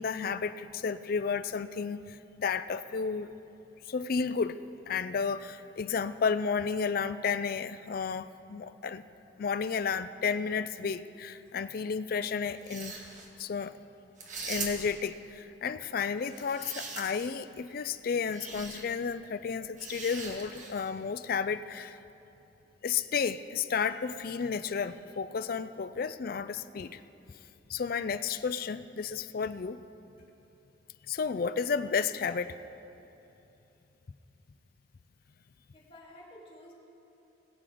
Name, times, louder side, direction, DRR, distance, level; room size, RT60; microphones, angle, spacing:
voice 1, 0.0-3.3 3.9-4.6 4.9-9.0 9.4-12.9 13.4-13.7 14.5-22.0 22.8-27.0 27.7-29.8 31.1-32.5, left 6 dB, 50° left, 13 dB, 0.4 m, -32 dB
sound 1, 12.6-13.3 14.2-15.1 16.2-17.4 18.3-18.8 19.8-20.9, right 4 dB, 40° right, 1.4 m, -41 dB
voice 2, 35.7-36.7, left 1 dB, 30° left, -5 dB, 2.4 m, -52 dB
20.0 x 7.7 x 5.0 m, 3.0 s
head